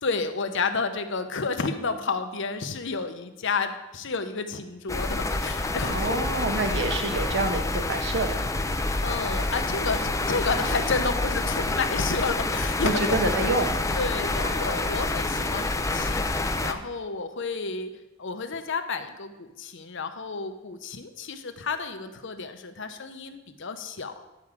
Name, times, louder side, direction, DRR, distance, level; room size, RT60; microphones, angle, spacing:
voice 1, 0.0-6.3 9.0-13.2 13.9-17.9 18.2-24.3, left 4 dB, 65° left, 8 dB, 0.9 m, -31 dB
sound 1, 4.9-16.7, left 2 dB, 15° left, 0.6 m, -27 dB
voice 2, 5.9-8.3 12.8-13.7, right 2 dB, 65° right, 5 dB, 1.2 m, -27 dB
10.5 x 4.8 x 7.4 m, 0.99 s
head